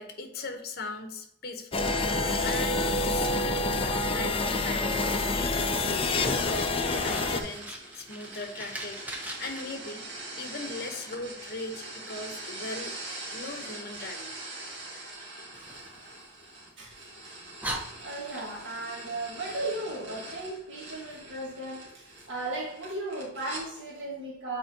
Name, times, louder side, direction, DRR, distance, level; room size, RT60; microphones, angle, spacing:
voice 1, 0.0-2.2 2.4-3.6 4.0-6.1 6.5-10.1 10.4-13.0 13.3-14.4, left 3 dB, 55° left, 5 dB, 1.0 m, -39 dB
sound 1, 1.7-7.4, left 2 dB, 30° left, 0.5 m, -27 dB
sound 2, 6.3-23.6, right 2 dB, 65° right, 2.1 m, -43 dB
Fire, 6.6-9.6 15.5-16.8 17.2-17.3 17.6-18.8, right 1 dB, 10° right, 0.8 m, -40 dB
voice 2, 18.0-24.6, right 2 dB, 90° right, -3 dB, 1.5 m, -36 dB
7.8 x 4.5 x 2.8 m, 0.80 s
head